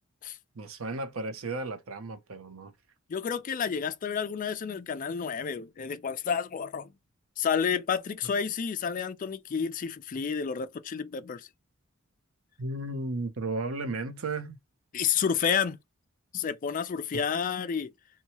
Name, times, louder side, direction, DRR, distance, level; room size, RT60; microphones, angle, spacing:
voice 1, 0.5-2.7 12.6-14.6 17.1-17.2, right 2 dB, 70° right, 0.6 m, -34 dB
voice 2, 3.1-6.9 7.4-11.5 14.9-15.8 16.3-17.9, left 7 dB, 40° left, 0.3 m, -30 dB
2.7 x 2.3 x 2.9 m
head